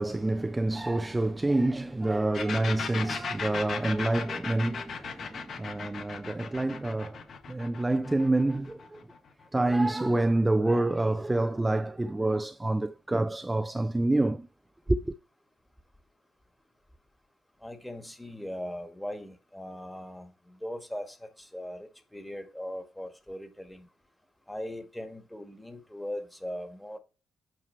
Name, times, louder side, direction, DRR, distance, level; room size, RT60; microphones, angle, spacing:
voice 1, 0.0-7.2 7.5-9.0 9.5-14.5 14.9-15.1, right 2 dB, 15° right, 0.4 m, -27 dB
sound 1, 2.3-9.9, left 6 dB, 55° left, 1.3 m, -37 dB
voice 2, 17.6-23.9 24.5-27.0, left 1 dB, 5° left, 1.7 m, -39 dB
8.7 x 4.6 x 4.5 m
cardioid pair, 90°, 0 cm